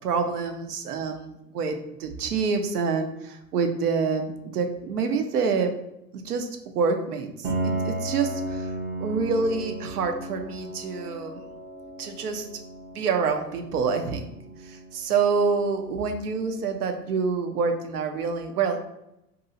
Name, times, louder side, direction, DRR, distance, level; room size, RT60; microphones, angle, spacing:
voice 1, 0.0-1.7 2.0-5.8 6.1-6.5 6.7-7.3 7.6-8.7 9.0-11.4 12.0-12.5 12.9-14.3 14.7-18.9, right 5 dB, 70° right, 6 dB, 0.7 m, -27 dB
Piano, 7.4-17.0, right 1 dB, 20° right, 0.6 m, -35 dB
2.7 x 2.7 x 4.0 m, 0.84 s
figure-of-eight pair, 95°, 48 cm